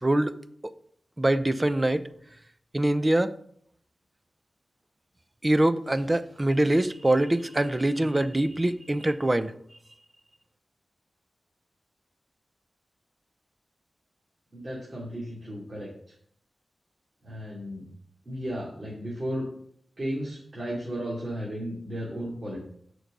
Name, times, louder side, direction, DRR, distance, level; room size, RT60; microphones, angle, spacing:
voice 1, 0.0-0.3 1.2-2.1 2.7-3.3 5.4-9.5, right 1 dB, 25° right, 12 dB, 0.6 m, -24 dB
voice 2, 14.5-15.9 17.2-17.9 18.3-19.5 20.0-22.6, equal, 50° right, -5 dB, 2.5 m, -34 dB
6.5 x 4.7 x 6.6 m, 0.65 s
cardioid pair, 50°, 0 cm